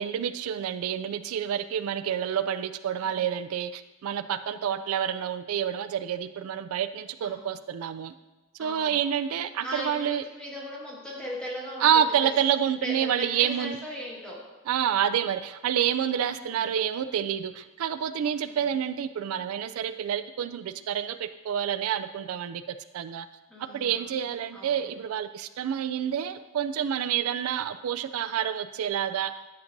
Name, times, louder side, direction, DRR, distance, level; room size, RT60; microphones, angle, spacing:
voice 1, 0.0-8.1 8.6-10.2 11.8-13.8 14.7-23.3 23.6-29.3, right 9 dB, 85° right, 12 dB, 0.3 m, -28 dB
voice 2, 8.6-8.9 9.6-12.3 12.8-14.4 16.4-16.6 18.4-18.6 23.5-24.1 24.5-24.8, equal, 5° left, -6 dB, 1.6 m, -38 dB
10.5 x 6.6 x 2.6 m, 1.1 s
head